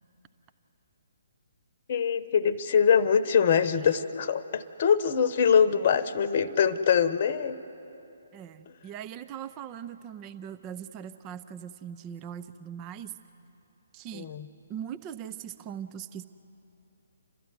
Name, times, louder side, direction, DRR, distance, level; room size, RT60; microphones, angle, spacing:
voice 1, 1.9-7.6 14.1-14.5, left 7 dB, 45° left, 11 dB, 0.9 m, -23 dB
voice 2, 8.3-13.1 13.9-14.3 14.7-16.3, right 9 dB, 25° right, 10 dB, 0.6 m, -40 dB
29.5 x 13.5 x 9.5 m, 3.0 s
figure-of-eight pair, 135°, 0 cm